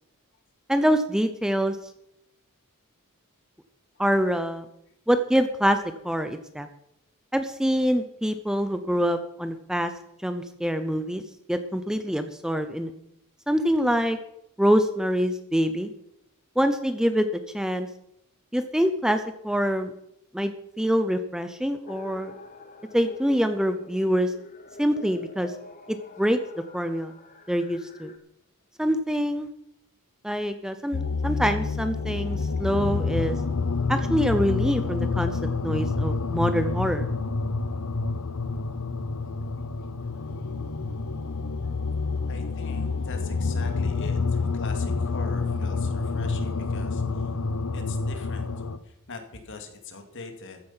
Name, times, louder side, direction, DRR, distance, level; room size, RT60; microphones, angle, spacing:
voice 1, 0.7-1.8 4.0-4.6 5.1-5.8 6.0-6.7 7.3-9.9 10.2-11.2 11.5-12.9 13.5-14.2 14.6-15.9 16.6-17.9 18.5-19.9 20.3-22.3 22.9-24.3 24.8-25.5 25.9-26.4 26.7-27.1 27.5-28.1 28.8-29.5 30.2-33.4 33.9-37.1, equal, 5° right, 9 dB, 0.6 m, -25 dB
sound 1, 21.9-28.2, left 3 dB, 40° left, 1.3 m, -45 dB
sound 2, 30.9-48.8, left 4 dB, 85° left, 0.9 m, -28 dB
voice 2, 42.3-47.0 47.7-48.5 48.8-50.6, left 3 dB, 60° left, 5 dB, 2.3 m, -42 dB
14.5 x 10.0 x 5.7 m, 0.79 s
head